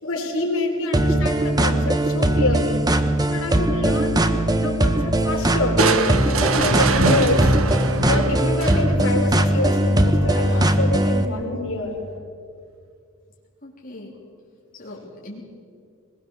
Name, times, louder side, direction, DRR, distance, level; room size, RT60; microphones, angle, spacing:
voice 1, 0.0-2.8 3.3-7.5 8.1-11.9, left 2 dB, 75° left, 1 dB, 4.3 m, -26 dB
sound 1, 0.9-11.3, right 1 dB, 20° right, 1.2 m, -20 dB
Crushing, 5.8-9.2, right 3 dB, 75° right, 1.4 m, -23 dB
voice 2, 13.6-14.2 14.8-15.4, left 1 dB, 40° left, -4 dB, 3.8 m, -40 dB
21.5 x 21.5 x 7.4 m, 2.2 s
head